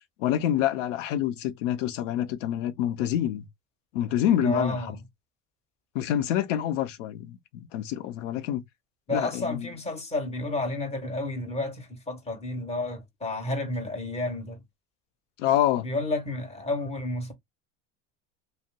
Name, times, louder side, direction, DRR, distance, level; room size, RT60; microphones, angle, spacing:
voice 1, 0.2-3.5 3.9-5.0 5.9-8.6 9.1-9.7 15.4-15.9, left 11 dB, 85° left, 0.7 m, -27 dB
voice 2, 4.4-5.0 9.1-14.6 15.8-17.3, left 2 dB, 15° left, 1.5 m, -31 dB
2.6 x 2.2 x 3.6 m
supercardioid pair, 95°, 36 cm